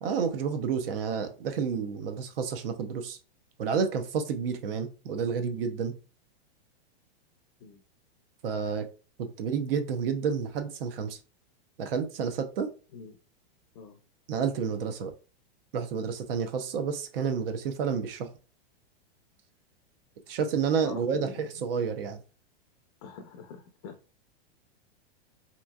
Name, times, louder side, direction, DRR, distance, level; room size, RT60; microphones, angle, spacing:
voice 1, 0.0-3.2 3.6-5.9 8.4-8.9 9.2-11.2 11.8-12.7 14.3-15.1 15.7-18.3 20.3-22.2, right 6 dB, 65° right, 7 dB, 0.7 m, -30 dB
voice 2, 20.8-21.4 23.0-23.9, left 5 dB, 35° left, 4 dB, 0.5 m, -43 dB
3.0 x 2.5 x 2.3 m, 0.34 s
supercardioid pair, 155°, 31 cm